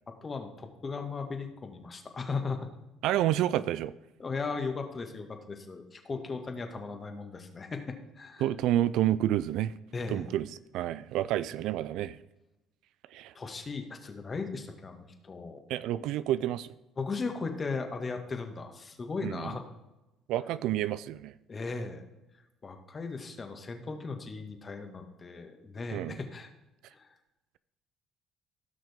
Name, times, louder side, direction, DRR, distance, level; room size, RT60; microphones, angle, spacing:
voice 1, 0.1-2.7 4.2-8.5 9.9-10.4 13.3-15.6 15.9-16.1 17.0-19.6 21.5-22.0 22.6-26.5 26.9-27.1, left 4 dB, 35° left, 5 dB, 1.8 m, -37 dB
voice 2, 3.0-3.9 8.4-9.7 10.1-10.5 10.7-12.2 13.1-13.3 15.7-16.7 19.2-19.6 20.3-21.3 25.9-26.2, right 13 dB, 70° right, 16 dB, 0.3 m, -29 dB
16.5 x 6.2 x 3.6 m, 0.98 s
hypercardioid pair, 65°, 0 cm